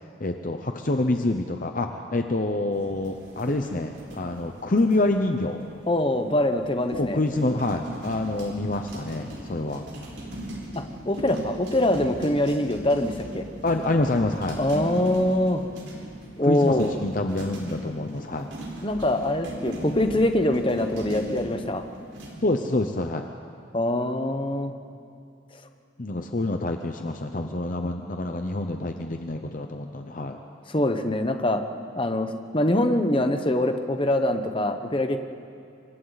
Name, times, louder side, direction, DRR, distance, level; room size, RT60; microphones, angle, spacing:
voice 1, 0.2-5.6 6.9-9.8 13.6-14.6 16.4-18.5 22.4-23.2 26.0-30.4, left 2 dB, 45° left, 5 dB, 0.8 m, -27 dB
sound 1, 2.7-22.3, right 1 dB, 70° right, 4.6 m, -39 dB
voice 2, 5.9-7.2 10.8-13.5 14.6-15.7 16.4-16.9 18.8-21.8 23.7-24.7 30.7-31.6 31.9-35.2, left 1 dB, 25° left, 6 dB, 1.1 m, -24 dB
27.5 x 24.0 x 4.1 m, 2.6 s
head